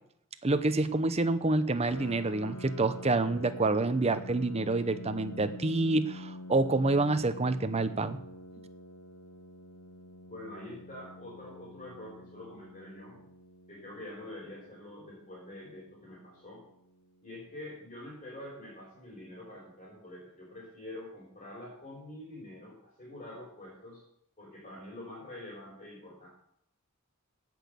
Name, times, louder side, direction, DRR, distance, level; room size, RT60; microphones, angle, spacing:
voice 1, 0.4-8.2, right 2 dB, 30° right, 10 dB, 0.8 m, -27 dB
Piano, 1.9-17.3, left 1 dB, 80° left, 1.1 m, -47 dB
voice 2, 10.3-13.2 13.7-16.6 17.2-24.0 24.4-26.3, left 1 dB, 30° left, -6 dB, 5.0 m, -46 dB
16.5 x 6.2 x 6.8 m, 0.73 s
head